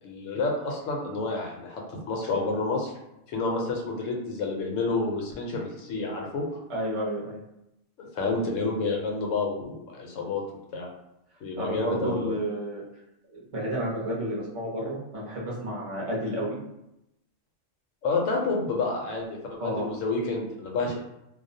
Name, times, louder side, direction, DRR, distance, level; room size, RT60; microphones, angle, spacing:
voice 1, 0.0-2.9 3.3-6.5 8.0-10.4 10.7-10.9 11.4-12.3 18.0-21.0, left 3 dB, 85° left, 0 dB, 1.0 m, -29 dB
voice 2, 6.7-7.4 11.6-12.8 13.5-16.6 19.6-19.9, equal, 40° right, -4 dB, 0.5 m, -31 dB
2.3 x 2.0 x 2.6 m, 0.85 s
omnidirectional pair, 1.3 m